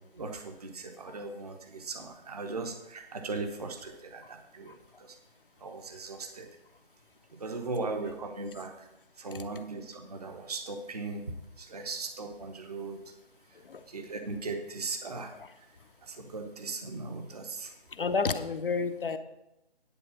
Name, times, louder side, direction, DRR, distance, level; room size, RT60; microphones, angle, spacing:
voice 1, 0.1-4.7 5.0-5.2 5.6-6.5 7.4-8.9 9.2-11.2 11.6-13.0 13.9-15.3 16.1-17.7, right 3 dB, 35° right, 6 dB, 0.9 m, -38 dB
voice 2, 17.9-19.2, left 4 dB, 55° left, 8 dB, 0.8 m, -30 dB
10.0 x 4.6 x 7.5 m, 0.88 s
figure-of-eight pair, 170°, 32 cm